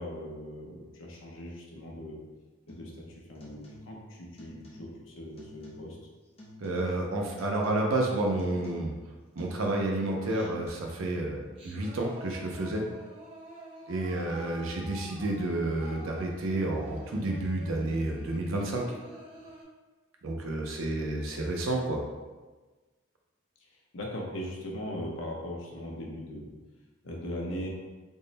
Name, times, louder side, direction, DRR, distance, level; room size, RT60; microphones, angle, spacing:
voice 1, 0.0-2.2 2.7-2.9 3.3-6.0 14.6-14.8 23.9-26.5 27.0-27.7, left 1 dB, 75° left, -2 dB, 0.7 m, -39 dB
sound 1, 2.7-3.0 3.4-4.1 4.4-5.1 5.4-6.0 6.4-7.1 7.4-8.0 8.4-9.1 9.4-10.1 10.4-10.7, left 1 dB, 30° left, 0.6 m, -50 dB
voice 2, 6.6-8.9 9.4-12.9 13.9-18.9 20.2-22.0, right 2 dB, 80° right, 0 dB, 0.6 m, -30 dB
Singing, 10.2-10.8 11.3-19.6, right 1 dB, 25° right, 0.8 m, -48 dB
3.6 x 2.1 x 3.9 m, 1.3 s
head